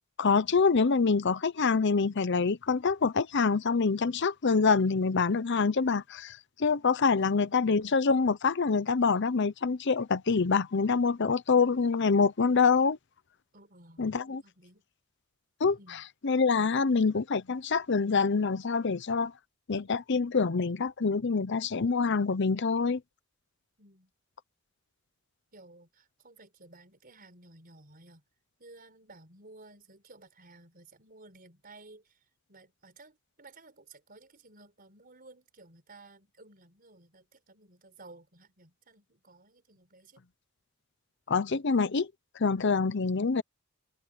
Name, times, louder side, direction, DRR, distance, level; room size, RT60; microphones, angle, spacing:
voice 1, 0.2-13.0 14.0-14.4 15.6-15.8 16.2-19.3 19.7-23.0 41.3-42.1 42.4-43.4, left 4 dB, 60° left, 0.7 m, -26 dB
voice 2, 7.1-7.5 13.5-14.8 15.8-16.0 23.8-24.1 25.5-28.2 28.6-40.2, right 2 dB, 45° right, 4.9 m, -55 dB
head